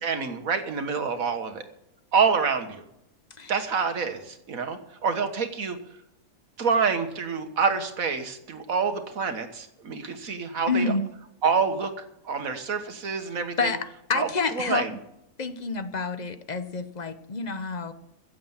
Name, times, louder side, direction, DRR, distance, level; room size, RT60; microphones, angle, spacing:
voice 1, 0.0-1.6 2.1-2.8 3.5-5.8 6.6-10.9 11.4-11.9 12.2-13.7 14.1-14.3 14.6-14.9, right 5 dB, 70° right, 7 dB, 1.8 m, -27 dB
voice 2, 10.7-11.0 13.6-14.9 15.4-17.9, left 4 dB, 35° left, 11 dB, 0.8 m, -28 dB
15.5 x 7.9 x 7.2 m, 0.82 s
omnidirectional pair, 1.5 m